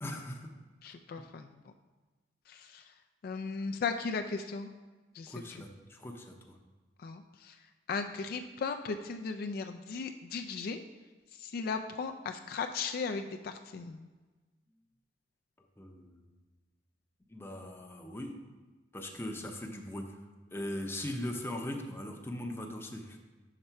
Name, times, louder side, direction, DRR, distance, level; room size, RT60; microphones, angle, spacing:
voice 1, 0.0-0.5 1.2-1.3 5.3-6.6 15.6-16.4 17.3-18.3 18.9-20.2 20.5-23.2, left 1 dB, 15° left, 2 dB, 0.6 m, -40 dB
voice 2, 0.8-1.5 2.5-2.8 3.2-4.7 5.2-5.3 7.0-7.5 7.9-10.8 11.4-14.1, left 5 dB, 55° left, 6 dB, 0.3 m, -36 dB
5.8 x 4.2 x 5.5 m, 1.3 s
head